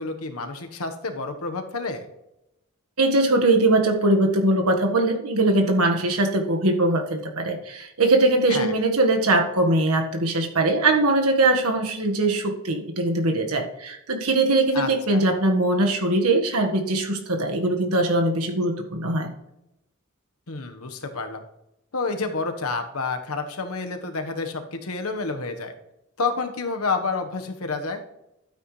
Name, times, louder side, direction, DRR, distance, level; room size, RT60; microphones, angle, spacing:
voice 1, 0.0-2.1 8.5-8.7 14.7-15.2 20.5-21.4 21.9-25.7 26.2-28.0, left 3 dB, 75° left, 5 dB, 1.3 m, -29 dB
voice 2, 3.0-19.3, right 2 dB, 80° right, 3 dB, 1.6 m, -21 dB
12.5 x 8.9 x 3.2 m, 0.88 s
head